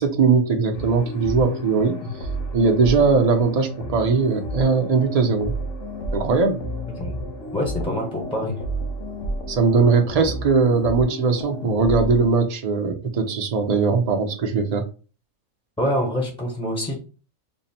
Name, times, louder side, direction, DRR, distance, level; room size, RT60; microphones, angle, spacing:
voice 1, 0.0-2.0 2.5-5.5 6.1-6.6 9.5-14.8, right 4 dB, 45° right, 0.5 m, -20 dB
sound 1, 0.7-12.3, equal, 75° left, 1.2 m, -31 dB
voice 2, 7.5-8.6 15.8-16.9, equal, 5° left, 0.6 m, -25 dB
3.6 x 2.0 x 4.1 m
omnidirectional pair, 1.3 m